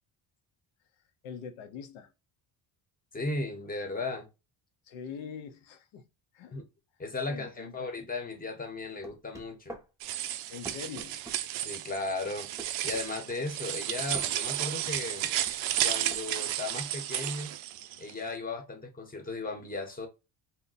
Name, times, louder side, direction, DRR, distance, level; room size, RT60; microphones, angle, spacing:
voice 1, 1.2-2.1 4.9-6.1 6.3-6.6 7.3-7.9 10.5-11.2, left 6 dB, 80° left, 0.8 m, -43 dB
voice 2, 3.1-4.3 6.5-6.6 7.0-9.7 11.6-12.5 12.8-15.3 15.8-17.5 18.0-20.1, left 3 dB, 20° left, 0.9 m, -36 dB
sound 1, 9.0-9.9 10.6-11.4 12.6-13.1 14.1-14.3 15.5-16.3, right 2 dB, 5° right, 0.5 m, -44 dB
sound 2, 10.0-18.1, right 12 dB, 85° right, 0.5 m, -33 dB
2.7 x 2.1 x 4.0 m
cardioid pair, 115°, 47 cm